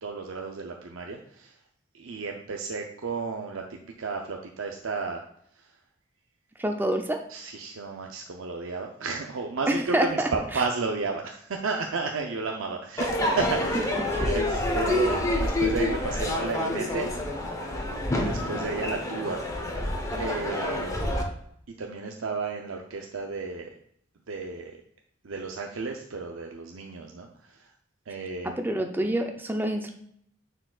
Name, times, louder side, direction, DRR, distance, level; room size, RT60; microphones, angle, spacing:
voice 1, 0.0-1.5 1.9-5.2 7.3-17.1 18.1-19.4 20.2-21.0 21.8-23.7 24.3-24.7 25.2-27.3 28.1-28.6, right 4 dB, 85° right, 2 dB, 0.6 m, -33 dB
voice 2, 6.6-7.2 9.7-10.6 14.0-14.2 28.4-29.9, right 1 dB, 10° right, 4 dB, 0.5 m, -27 dB
Crowd / Fireworks, 13.0-21.2, left 1 dB, 15° left, 0.9 m, -28 dB
9.7 x 4.6 x 2.4 m, 0.68 s
head